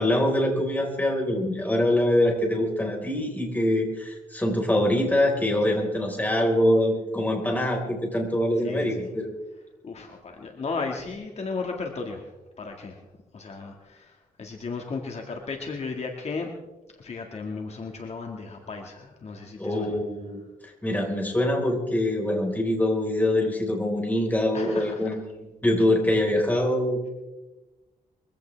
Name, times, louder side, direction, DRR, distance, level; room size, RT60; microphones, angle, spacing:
voice 1, 0.0-9.3 19.6-25.2 25.6-27.1, left 1 dB, 10° left, 0 dB, 4.6 m, -24 dB
voice 2, 8.6-9.1 9.8-12.3 12.6-13.0 13.3-16.5 17.0-20.0 24.5-25.1, left 4 dB, 50° left, 2 dB, 1.9 m, -35 dB
23.0 x 16.0 x 3.4 m, 1.1 s
cardioid pair, 105°, 14 cm